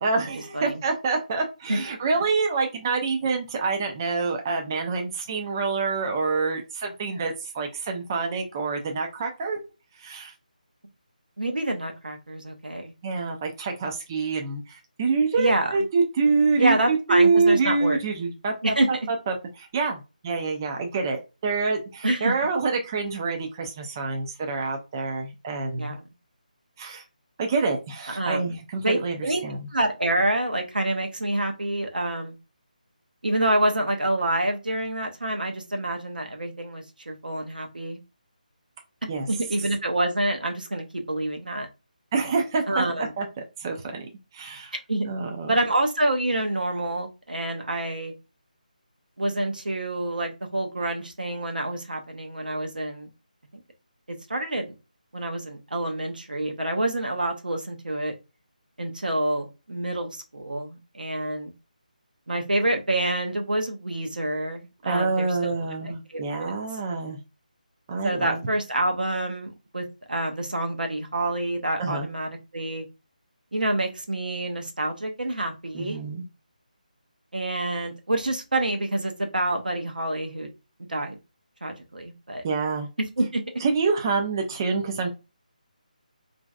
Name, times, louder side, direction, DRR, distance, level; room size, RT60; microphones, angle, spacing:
voice 1, 0.0-9.6 10.0-10.3 13.0-26.0 26.8-27.0 27.4-29.7 39.1-39.3 42.1-44.1 44.3-44.7 45.0-45.5 64.9-67.2 67.9-68.4 71.8-72.1 75.7-76.2 82.4-82.9 83.6-85.1, right 4 dB, 25° right, 3 dB, 0.4 m, -26 dB
voice 2, 11.4-12.9 15.4-15.8 16.6-18.0 18.6-18.9 22.0-22.3 25.8-26.0 28.1-28.6 28.8-29.4 29.7-32.4 33.2-38.0 39.3-41.7 42.7-43.1 44.9-45.1 45.5-48.1 49.2-53.1 53.5-53.6 54.3-54.8 55.1-58.1 58.8-61.5 62.3-65.6 65.8-66.5 68.0-72.9 73.5-76.0 77.3-80.5 80.8-81.2 81.6-82.4 83.2-83.4, right 1 dB, 75° right, 3 dB, 0.7 m, -27 dB
3.0 x 2.6 x 2.3 m, 0.27 s
figure-of-eight pair, 155°, 5 cm